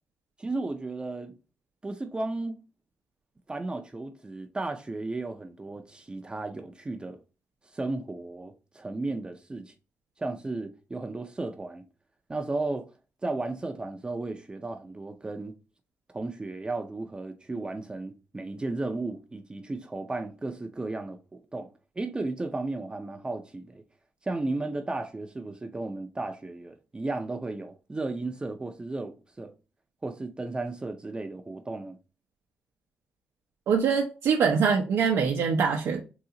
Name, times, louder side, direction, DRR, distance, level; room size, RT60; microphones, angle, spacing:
voice 1, 0.4-1.3 1.8-2.6 3.5-7.2 7.7-9.7 10.2-11.9 12.3-12.9 13.2-15.5 16.1-21.7 22.0-23.8 24.2-29.5 30.0-32.0, right 2 dB, 20° right, 0.5 m, -34 dB
voice 2, 33.7-36.0, right 6 dB, 80° right, 0.5 m, -24 dB
3.8 x 2.4 x 2.8 m
cardioid pair, 90°, 4 cm